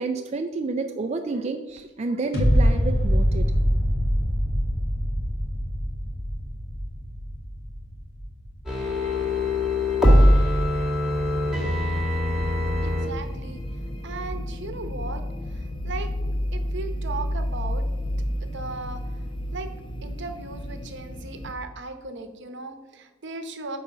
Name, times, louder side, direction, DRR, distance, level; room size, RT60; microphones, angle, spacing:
voice 1, 0.0-3.5, right 3 dB, 35° right, 5 dB, 0.4 m, -29 dB
sound 1, 2.3-9.4 9.8-9.9, equal, 55° left, 2.3 m, -24 dB
sound 2, 8.7-13.1 13.4-13.5, left 1 dB, 5° right, 2.1 m, -21 dB
sound 3, 10.5-21.5, equal, 25° left, 0.7 m, -32 dB
voice 2, 12.6-13.6 14.0-15.2 15.5-16.1 16.5-17.8 18.4-19.0 19.5-19.7 20.0-23.8, right 3 dB, 60° right, 8 dB, 0.9 m, -37 dB
7.0 x 5.0 x 5.5 m, 1.2 s
head